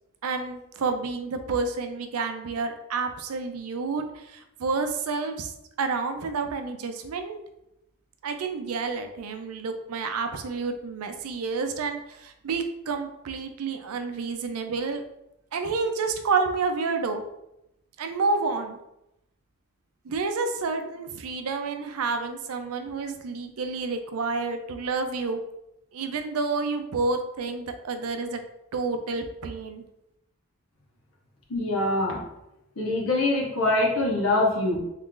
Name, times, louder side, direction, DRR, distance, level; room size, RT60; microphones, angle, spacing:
voice 1, 0.2-5.5 5.8-7.4 8.2-15.0 15.5-17.2 18.0-18.8 20.0-25.4 25.9-28.4 28.7-29.8, right 4 dB, 90° right, 7 dB, 0.4 m, -29 dB
voice 2, 31.5-32.2 32.8-34.8, left 2 dB, 70° left, -1 dB, 1.0 m, -24 dB
3.1 x 2.4 x 3.7 m, 0.86 s
head